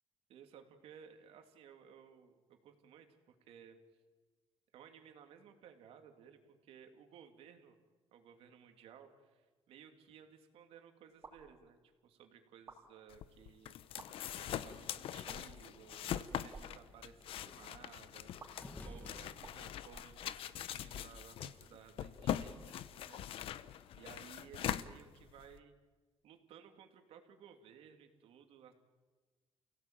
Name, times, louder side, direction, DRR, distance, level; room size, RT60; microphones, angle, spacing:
voice 1, 0.3-3.8 4.7-7.8 8.1-13.7 14.3-18.5 18.8-23.2 23.9-25.7 26.2-28.7, right 8 dB, 80° right, 5 dB, 2.9 m, -58 dB
sound 1, 11.2-11.5 12.5-12.8 13.8-14.1 15.2-15.6 16.4-16.7 18.4-18.5 19.4-20.5, right 4 dB, 30° right, 4.3 m, -54 dB
sound 2, 13.1-25.6, left 11 dB, 70° left, 0.9 m, -42 dB
sound 3, 14.8-21.5, left 1 dB, 15° left, 1.8 m, -58 dB
29.0 x 17.0 x 9.0 m, 1.3 s
cardioid pair, 160°, 10 cm